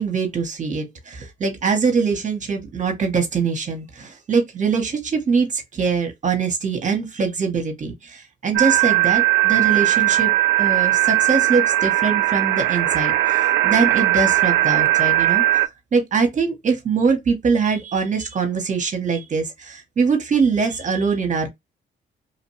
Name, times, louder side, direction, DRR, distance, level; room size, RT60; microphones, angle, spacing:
voice 1, 0.0-10.3 10.6-21.5, right 5 dB, 40° right, 0.8 m, -23 dB
sound 1, 8.5-15.7, right 16 dB, 70° right, 0.4 m, -18 dB
2.9 x 2.2 x 3.0 m
cardioid pair, 90°, 20 cm